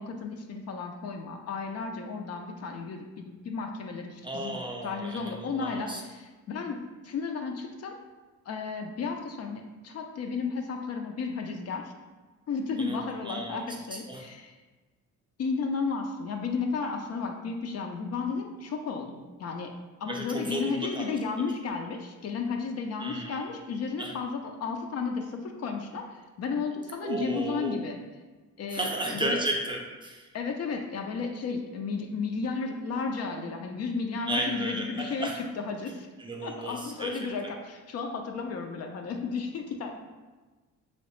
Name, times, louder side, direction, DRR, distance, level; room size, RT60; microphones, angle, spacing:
voice 1, 0.0-4.6 4.8-7.9 8.5-11.9 12.5-14.5 15.4-19.7 20.0-28.0 28.6-29.4 30.3-36.1 36.4-39.9, left 4 dB, 55° left, 3 dB, 0.5 m, -33 dB
voice 2, 4.2-6.0 12.8-14.2 20.1-21.1 23.0-23.4 24.0-24.1 27.0-27.8 28.7-30.3 34.3-35.4 36.2-37.5, right 2 dB, 15° right, 0 dB, 0.5 m, -34 dB
3.0 x 2.8 x 3.1 m, 1.3 s
cardioid pair, 90°, 30 cm